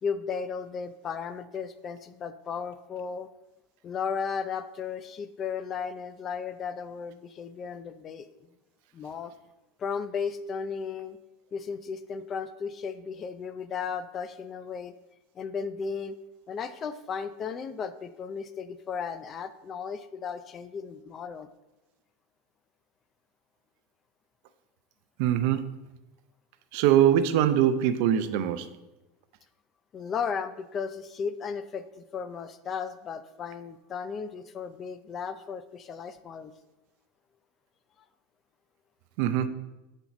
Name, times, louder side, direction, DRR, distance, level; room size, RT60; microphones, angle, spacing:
voice 1, 0.0-3.3 3.8-8.3 8.9-9.3 9.8-11.2 11.5-14.9 15.4-16.2 16.5-21.5 29.9-36.5, left 6 dB, 30° left, 12 dB, 0.3 m, -35 dB
voice 2, 25.2-25.7 26.7-28.7 39.2-39.5, right 10 dB, 60° right, 11 dB, 0.4 m, -23 dB
5.9 x 4.4 x 4.0 m, 1.0 s
supercardioid pair, 135°, 0 cm